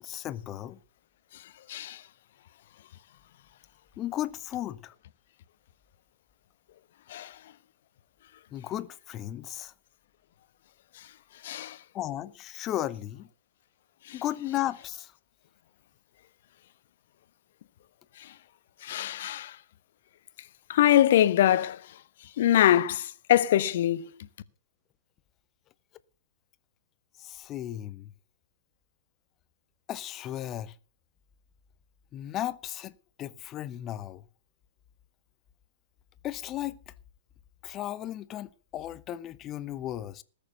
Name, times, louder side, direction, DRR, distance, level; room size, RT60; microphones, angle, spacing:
voice 1, 0.0-0.8 4.0-4.9 8.5-9.7 11.9-13.3 14.1-15.1 27.2-28.1 29.9-30.7 32.1-32.9 33.2-34.2 36.2-36.9 37.6-40.2, left 13 dB, 25° left, 0.9 m, -35 dB
voice 2, 11.4-11.8 18.8-19.5 20.7-21.8 22.4-24.1, left 12 dB, 55° left, 1.1 m, -23 dB
20.0 x 6.8 x 6.6 m
figure-of-eight pair, 110°, 0 cm